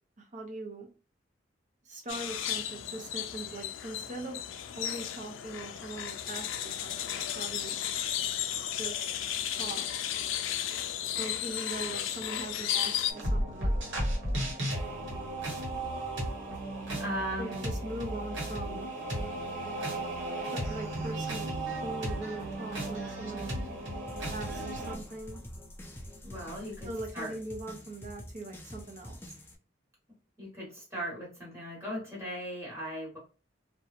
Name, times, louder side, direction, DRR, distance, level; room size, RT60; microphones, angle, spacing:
voice 1, 0.2-0.9 1.8-4.4 4.7-7.8 8.8-9.1 9.5-9.9 11.2-13.8 17.4-18.9 20.5-23.6 24.3-25.4 26.8-29.2, right 2 dB, 40° right, 2 dB, 0.6 m, -41 dB
sound 1, 2.1-13.1, left 10 dB, 85° left, 0.3 m, -34 dB
sound 2, 13.1-24.9, right 1 dB, 70° right, 1.1 m, -34 dB
voice 2, 17.0-17.7 26.2-26.9 27.1-27.3 30.4-33.2, equal, 15° right, -5 dB, 1.2 m, -38 dB
sound 3, 24.1-29.6, equal, 10° left, 0.4 m, -46 dB
2.9 x 2.2 x 2.4 m, 0.35 s
head